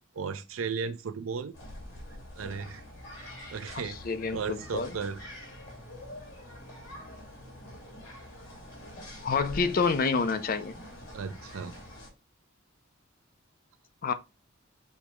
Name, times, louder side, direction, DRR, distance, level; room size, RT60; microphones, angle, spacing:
voice 1, 0.2-1.5 2.4-2.8 3.5-4.0 4.3-5.2 11.1-11.8, right 5 dB, 90° right, 0.5 m, -35 dB
sound 1, 1.5-12.1, left 1 dB, 65° left, 2.4 m, -45 dB
voice 2, 4.0-4.9 9.2-10.8 14.0-14.1, left 4 dB, 45° left, 0.5 m, -28 dB
6.5 x 2.3 x 2.9 m
head